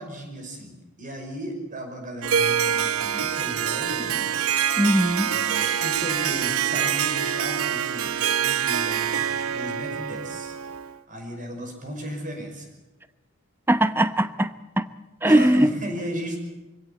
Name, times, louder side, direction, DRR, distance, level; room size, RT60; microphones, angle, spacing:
voice 1, 0.0-4.3 5.3-8.1 8.4-10.6 10.8-12.7 15.3-16.4, right 1 dB, 40° right, 4 dB, 5.6 m, -35 dB
Harp, 2.2-11.0, right 8 dB, 80° right, 0.8 m, -25 dB
voice 2, 4.8-5.3 13.7-14.5 14.8-14.9 15.2-15.7, right 1 dB, 10° right, 12 dB, 0.9 m, -19 dB
24.5 x 16.5 x 8.6 m, 1.1 s
head